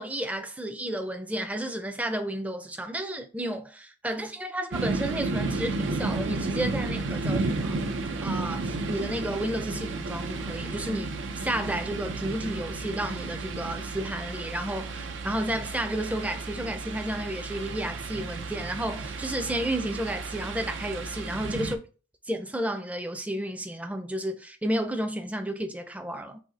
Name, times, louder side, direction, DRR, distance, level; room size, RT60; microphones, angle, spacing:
voice 1, 0.0-7.8 8.2-21.8 22.3-26.4, right 1 dB, 10° right, 0.5 m, -32 dB
sound 1, 4.7-21.8, right 3 dB, 80° right, 0.6 m, -32 dB
4.1 x 2.7 x 4.8 m
head